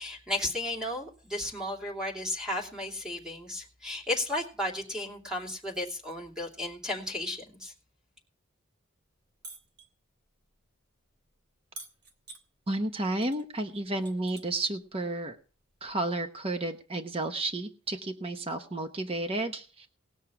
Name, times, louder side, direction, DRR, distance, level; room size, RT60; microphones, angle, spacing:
voice 1, 0.0-7.7, left 1 dB, 5° right, -4 dB, 2.8 m, -34 dB
sound 1, 9.4-9.9 11.8-12.4 13.2-13.4 13.7-14.7 15.9-16.0, right 3 dB, 50° right, 2.7 m, -46 dB
voice 2, 12.7-15.4 15.8-19.9, right 2 dB, 25° right, 6 dB, 0.9 m, -32 dB
19.0 x 6.4 x 5.8 m, 0.38 s
head